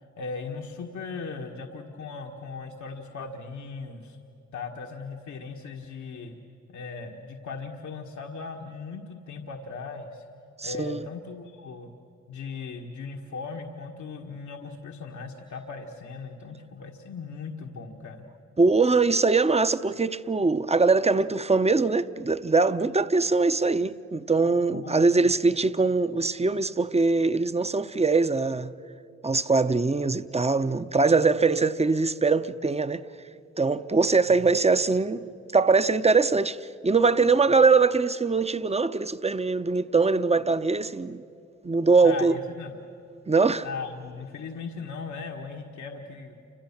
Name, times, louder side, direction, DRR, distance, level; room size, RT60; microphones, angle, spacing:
voice 1, 0.2-4.2 4.5-6.4 6.7-10.2 10.6-11.9 12.3-18.3 24.7-25.3 34.3-34.4 42.0-42.7 43.6-46.3, left 4 dB, 80° left, 1.6 m, -38 dB
voice 2, 10.6-11.0 18.6-28.7 29.2-33.0 33.6-35.2 35.5-36.6 36.8-41.2 41.6-42.3 43.3-43.7, right 4 dB, 20° right, 0.9 m, -22 dB
29.5 x 25.5 x 7.3 m
cardioid pair, 60°, 29 cm